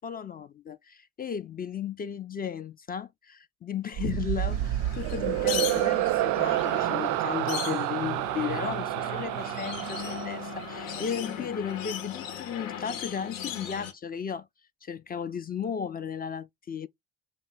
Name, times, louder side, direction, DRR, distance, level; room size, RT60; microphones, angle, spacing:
voice 1, 0.0-14.5 14.8-16.9, left 7 dB, 25° left, 0.3 m, -35 dB
sound 1, 3.9-11.3, right 15 dB, 55° right, 0.4 m, -29 dB
sound 2, 4.5-13.9, left 8 dB, 80° left, 0.8 m, -38 dB
3.7 x 2.9 x 4.0 m
figure-of-eight pair, 45°, 39 cm